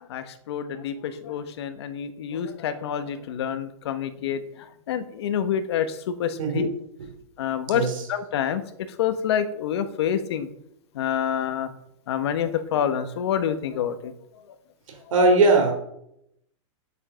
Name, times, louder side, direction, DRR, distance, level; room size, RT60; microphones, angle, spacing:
voice 1, 0.1-4.4 4.9-6.7 7.4-8.6 9.0-10.5 10.9-11.7 12.1-14.1, left 8 dB, 55° left, 10 dB, 1.2 m, -27 dB
voice 2, 6.4-6.7 7.0-7.1 7.7-8.1 14.9-15.7, right 3 dB, 85° right, 4 dB, 3.6 m, -20 dB
9.2 x 8.3 x 6.2 m, 0.78 s
supercardioid pair, 170°, 16 cm